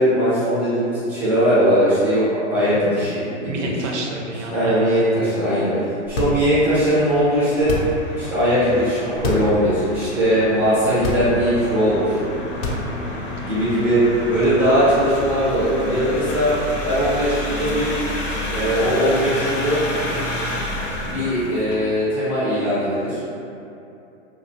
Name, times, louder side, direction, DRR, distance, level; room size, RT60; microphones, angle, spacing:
voice 1, 0.0-3.9 4.5-5.7 6.1-7.7 8.1-12.2 13.4-14.0 14.3-16.5 16.8-17.9 18.5-19.8 21.0-23.2, equal, 5° right, -12 dB, 0.3 m, -20 dB
voice 2, 3.5-4.9 12.7-13.0, right 3 dB, 70° right, 0 dB, 0.6 m, -31 dB
sound 1, 6.0-6.7 7.6-8.1 9.1-9.6 10.0-10.1 10.9-11.6 12.5-13.2, left 3 dB, 55° left, 0.5 m, -27 dB
sound 2, 6.2-21.8, left 1 dB, 90° left, 0.7 m, -30 dB
2.5 x 2.1 x 2.6 m, 2.7 s
hypercardioid pair, 135°, 37 cm